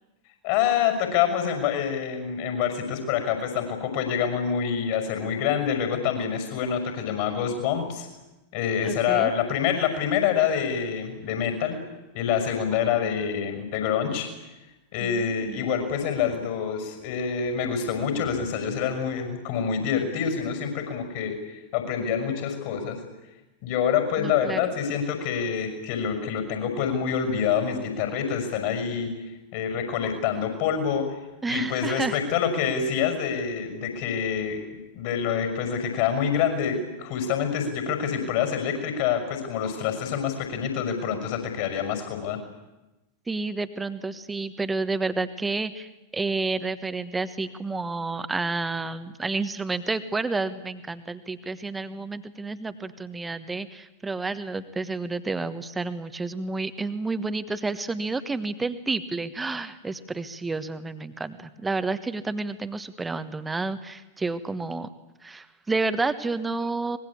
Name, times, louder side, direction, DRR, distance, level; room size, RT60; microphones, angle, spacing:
voice 1, 0.4-8.1 8.5-11.8 12.1-14.3 14.9-23.0 23.6-29.1 29.5-31.1 31.5-42.4, left 7 dB, 50° left, 7 dB, 5.9 m, -26 dB
voice 2, 8.8-9.3 15.0-15.7 24.2-24.6 31.4-32.2 43.3-45.9 46.1-64.9 65.2-67.0, right 3 dB, 10° right, 11 dB, 1.3 m, -30 dB
24.5 x 20.5 x 8.6 m, 1.0 s
figure-of-eight pair, 90°, 0 cm